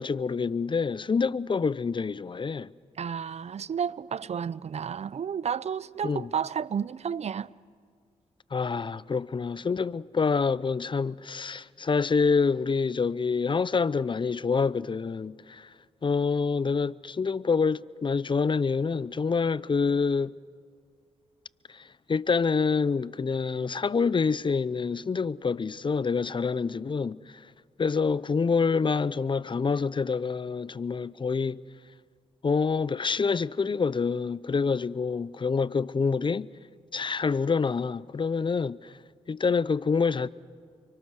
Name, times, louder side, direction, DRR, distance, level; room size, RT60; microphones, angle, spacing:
voice 1, 0.0-2.7 6.0-6.3 8.5-15.7 16.0-20.3 21.7-27.2 27.8-31.6 32.4-36.5 36.9-38.9 39.3-40.3, left 5 dB, 40° left, 0.6 m, -27 dB
voice 2, 3.0-7.5, right 7 dB, 55° right, 0.6 m, -31 dB
29.5 x 24.5 x 6.4 m
cardioid pair, 55°, 13 cm